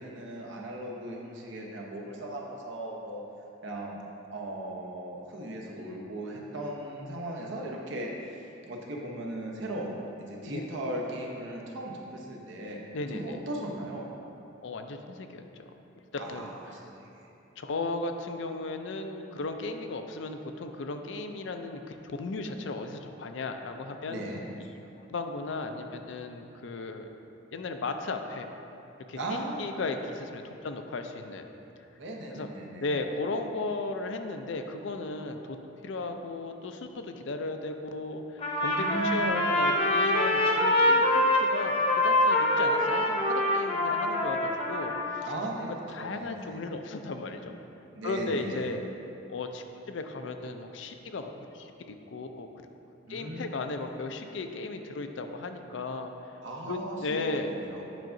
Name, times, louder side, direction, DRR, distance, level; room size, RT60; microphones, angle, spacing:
voice 1, 0.0-3.2 3.6-4.0 4.3-9.9 10.2-12.8 13.1-14.1 16.2-17.3 24.1-24.4 29.2-29.6 32.0-33.0 38.8-39.2 45.3-46.6 47.9-48.7 53.1-53.5 56.4-57.8, right 1 dB, 75° right, -1 dB, 0.9 m, -37 dB
voice 2, 12.9-13.4 14.6-15.7 16.1-16.5 17.6-24.2 25.1-27.1 27.5-28.5 29.1-29.2 29.6-31.5 32.3-32.5 32.8-35.6 35.8-41.7 42.0-45.3 45.9-47.5 48.0-48.8 49.3-52.5 53.1-56.3 56.7-57.5, left 3 dB, 70° left, 6 dB, 0.4 m, -35 dB
Trumpet, 38.4-45.3, left 1 dB, 30° left, 0.8 m, -25 dB
9.0 x 5.7 x 2.6 m, 2.8 s
head